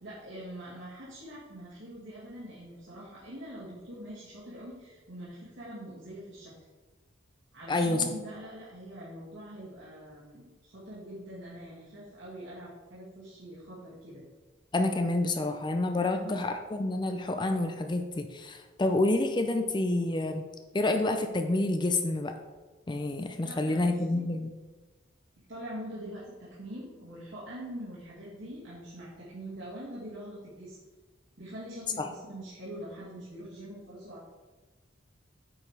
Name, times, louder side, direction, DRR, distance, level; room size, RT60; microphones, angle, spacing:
voice 1, 0.0-6.5 7.5-14.2 16.0-16.4 23.4-24.3 25.5-30.8 31.4-34.2, equal, 75° right, -9 dB, 2.2 m, -44 dB
voice 2, 7.7-8.0 14.7-20.4 20.7-22.4 22.9-24.5 32.0-32.1, left 2 dB, 25° left, 6 dB, 0.4 m, -28 dB
8.7 x 4.9 x 4.7 m, 1.3 s
head